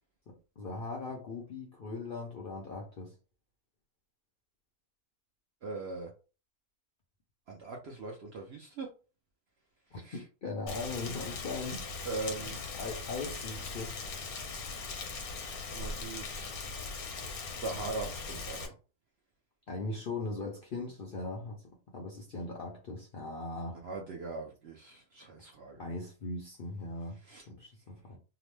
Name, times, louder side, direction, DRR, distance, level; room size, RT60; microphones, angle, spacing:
voice 1, 0.3-3.1 9.9-11.9 12.4-14.0 19.7-21.6 21.9-23.8 25.8-28.2, left 3 dB, 60° left, 0.6 m, -39 dB
voice 2, 5.6-6.1 7.5-8.9 10.0-10.2 12.1-12.6 15.7-16.5 17.6-18.7 23.8-25.8 27.3-27.4, right 3 dB, 60° right, 0.7 m, -40 dB
Rain, 10.7-18.7, left 4 dB, 85° left, 1.2 m, -40 dB
2.8 x 2.1 x 3.1 m
omnidirectional pair, 1.5 m